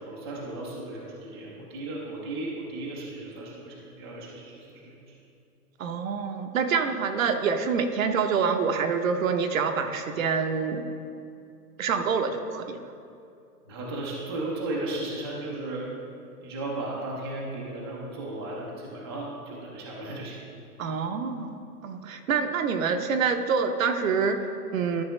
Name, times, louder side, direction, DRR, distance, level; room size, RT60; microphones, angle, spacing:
voice 1, 0.0-5.1 13.7-15.9 16.4-20.4, right 2 dB, 20° right, -4 dB, 0.4 m, -35 dB
voice 2, 5.8-10.8 11.8-12.8 20.8-21.5 21.8-25.0, right 5 dB, 55° right, 7 dB, 0.8 m, -26 dB
12.0 x 5.9 x 3.1 m, 2.5 s
hypercardioid pair, 150°, 48 cm